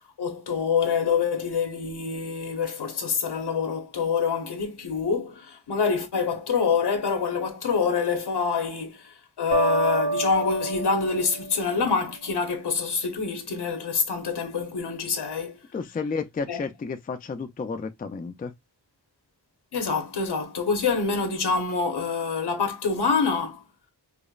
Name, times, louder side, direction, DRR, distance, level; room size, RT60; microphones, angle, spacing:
voice 1, 0.2-15.6 16.5-16.6 19.7-23.6, left 5 dB, 75° left, 1.0 m, -26 dB
sound 1, 9.5-12.3, right 3 dB, 90° right, 1.8 m, -28 dB
voice 2, 15.7-18.5, left 4 dB, 25° left, 0.3 m, -32 dB
5.0 x 2.0 x 2.4 m
wide cardioid pair, 130°, 41 cm